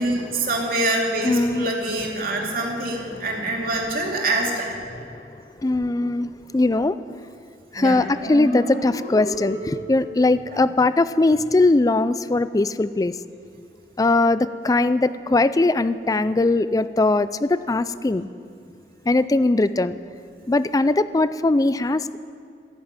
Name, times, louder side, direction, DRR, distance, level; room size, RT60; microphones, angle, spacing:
voice 1, 0.0-4.7 7.7-8.0, right 2 dB, 55° right, -1 dB, 2.7 m, -25 dB
voice 2, 1.2-1.7 3.1-3.5 4.9-7.0 7.7-13.2 14.0-18.3 19.1-20.0 20.5-22.2, left 2 dB, 20° left, 14 dB, 0.4 m, -20 dB
sound 1, 8.2-10.2, equal, 50° left, 4.2 m, -30 dB
15.0 x 10.5 x 8.9 m, 2.4 s
head